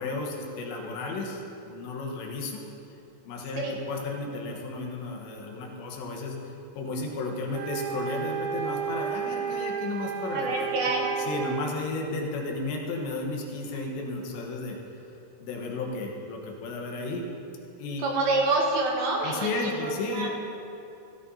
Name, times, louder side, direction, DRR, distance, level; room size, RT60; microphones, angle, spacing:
voice 1, 0.0-2.6 3.3-10.8 11.2-14.8 15.4-17.2 17.8-18.1 19.2-20.3, left 3 dB, 90° left, 0 dB, 3.5 m, -33 dB
sound 1, 7.5-11.7, right 7 dB, 85° right, 2.2 m, -32 dB
voice 2, 10.3-11.1 18.0-20.3, right 2 dB, 70° right, -2 dB, 2.9 m, -27 dB
16.5 x 14.0 x 2.8 m, 2.8 s
omnidirectional pair, 5.0 m